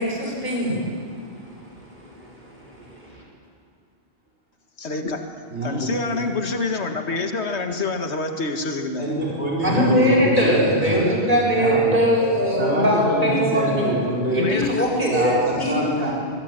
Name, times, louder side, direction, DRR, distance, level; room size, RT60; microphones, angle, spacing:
voice 1, 0.0-3.2 9.6-14.0 14.3-15.8, equal, 45° right, -3 dB, 7.6 m, -22 dB
voice 2, 4.8-5.3 5.6-9.1 14.4-14.9, left 3 dB, 75° left, 5 dB, 2.0 m, -27 dB
voice 3, 5.5-6.2 9.0-11.0 11.4-12.0 12.6-14.4 15.1-16.2, right 1 dB, 75° right, -5 dB, 4.8 m, -25 dB
26.0 x 22.5 x 9.1 m, 2.2 s
omnidirectional pair, 1.1 m